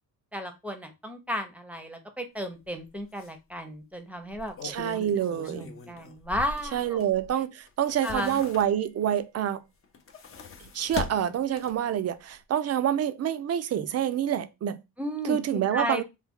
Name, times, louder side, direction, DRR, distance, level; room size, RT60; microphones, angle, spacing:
voice 1, 0.3-5.0 5.5-7.0 8.0-8.4 15.0-16.0, equal, 5° right, 0.7 m, -34 dB
sound 1, 2.6-2.8 3.2-3.3 4.2-7.3 7.7-9.0 9.8-12.0 12.3-12.4, left 5 dB, 35° left, 0.6 m, -40 dB
voice 2, 4.6-5.7 6.7-9.6 10.6-14.8 15.3-16.0, right 10 dB, 40° right, 0.4 m, -27 dB
3.3 x 2.2 x 3.6 m
cardioid pair, 95°, 39 cm